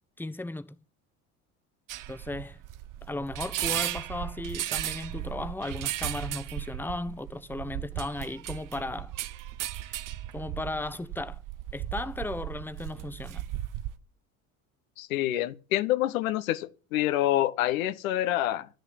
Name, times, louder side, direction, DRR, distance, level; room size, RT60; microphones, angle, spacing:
voice 1, 0.2-0.8 2.1-2.6 3.0-9.1 9.8-10.0 10.3-11.4 11.7-13.4, left 2 dB, 5° left, 1.1 m, -36 dB
sound 1, 1.9-14.0, right 13 dB, 50° right, 1.1 m, -36 dB
voice 2, 15.0-18.7, left 14 dB, 75° left, 1.1 m, -27 dB
12.5 x 6.6 x 9.5 m
hypercardioid pair, 65°, 42 cm